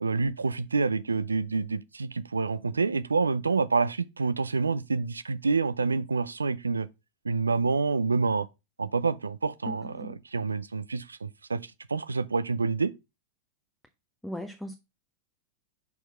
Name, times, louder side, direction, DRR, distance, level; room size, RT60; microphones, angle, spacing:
voice 1, 0.0-6.9 7.2-8.5 8.8-12.9, right 4 dB, 85° right, 0.5 m, -28 dB
voice 2, 9.7-10.2 14.2-14.7, left 1 dB, ahead, 0.8 m, -38 dB
5.5 x 4.6 x 5.6 m
figure-of-eight pair, 90°, 0 cm